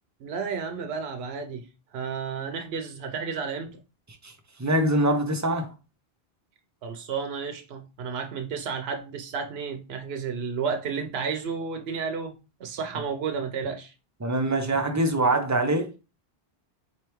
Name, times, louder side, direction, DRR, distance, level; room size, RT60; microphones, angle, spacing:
voice 1, 0.2-1.7 1.9-3.8 6.8-13.9, right 5 dB, 85° right, 0.8 m, -32 dB
voice 2, 4.6-5.7 14.2-16.0, right 1 dB, 25° right, 0.4 m, -24 dB
4.1 x 3.3 x 3.0 m
omnidirectional pair, 1.0 m